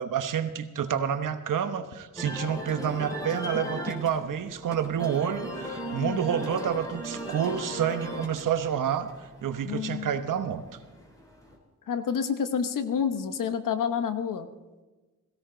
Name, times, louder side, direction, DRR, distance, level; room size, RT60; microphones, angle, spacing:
voice 1, 0.0-9.1 9.4-10.6, right 8 dB, 75° right, 9 dB, 1.1 m, -29 dB
sound 1, 2.2-11.6, equal, 10° left, 3.6 m, -38 dB
voice 2, 9.6-10.2 11.9-14.5, left 7 dB, 80° left, 10 dB, 1.1 m, -29 dB
17.5 x 16.0 x 3.9 m, 1.2 s
wide cardioid pair, 110°, 32 cm